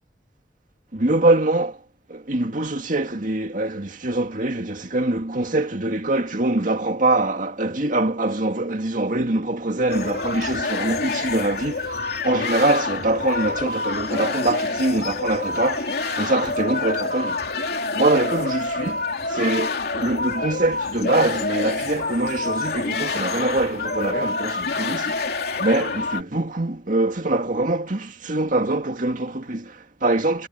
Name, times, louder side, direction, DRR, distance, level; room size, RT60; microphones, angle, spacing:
voice 1, 0.9-1.8 2.1-17.6 17.9-25.3 25.6-30.5, right 2 dB, 45° right, 2.1 m, -24 dB
sound 1, 9.9-26.2, left 3 dB, 60° left, 3.1 m, -27 dB
head